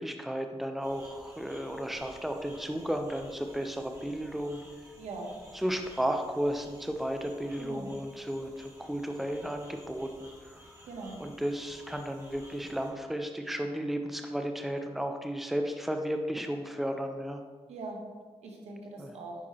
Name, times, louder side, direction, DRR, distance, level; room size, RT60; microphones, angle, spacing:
voice 1, 0.0-4.6 5.5-10.1 10.4-10.6 11.2-17.4 19.0-19.1, equal, ahead, 4 dB, 0.8 m, -33 dB
sound 1, 0.8-12.9, equal, 25° right, 2.2 m, -54 dB
voice 2, 5.0-5.3 7.6-7.9 10.8-11.2 17.7-18.0 18.4-19.4, right 3 dB, 90° right, 0 dB, 1.2 m, -41 dB
9.7 x 4.7 x 3.0 m, 1.5 s
cardioid pair, 55°, 11 cm